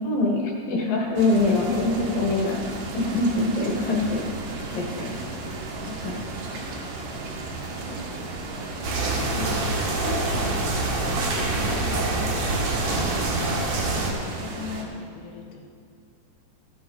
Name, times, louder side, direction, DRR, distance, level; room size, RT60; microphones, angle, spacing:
voice 1, 0.0-2.6 2.9-4.2 4.7-5.2 6.0-6.2 9.4-9.6, left 2 dB, 65° left, -1 dB, 2.7 m, -24 dB
sound 1, 1.2-14.8, right 3 dB, 85° right, 4.1 m, -35 dB
voice 2, 5.8-6.8 7.7-9.3 10.0-11.3 11.6-13.1 14.0-15.6, left 5 dB, 90° left, 1 dB, 3.8 m, -40 dB
sound 2, 8.8-14.1, right 2 dB, 65° right, 1.7 m, -25 dB
14.5 x 11.0 x 4.0 m, 2.3 s
omnidirectional pair, 5.4 m